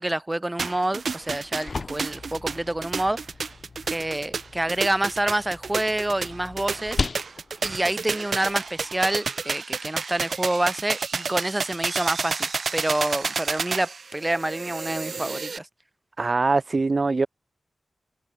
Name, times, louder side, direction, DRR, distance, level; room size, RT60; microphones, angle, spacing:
voice 1, 0.0-3.2 3.9-7.0 7.6-15.7, right 1 dB, 20° right, 2.2 m, -27 dB
sound 1, 0.6-15.6, right 5 dB, 65° right, 1.9 m, -30 dB
sound 2, 1.2-9.1, left 4 dB, 60° left, 6.9 m, -37 dB
voice 2, 16.2-17.3, right 3 dB, 50° right, 0.9 m, -22 dB
cardioid pair, 45°, 0 cm